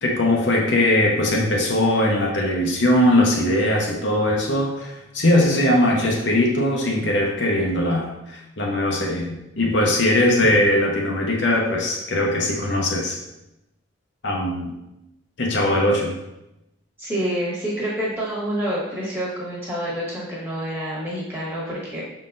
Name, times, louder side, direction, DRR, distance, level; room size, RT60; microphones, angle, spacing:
voice 1, 0.0-13.2 14.2-14.7 15.4-16.1, left 1 dB, 55° left, -1 dB, 0.7 m, -20 dB
voice 2, 17.0-22.0, equal, 10° right, -6 dB, 1.3 m, -27 dB
5.6 x 3.8 x 2.5 m, 0.91 s
head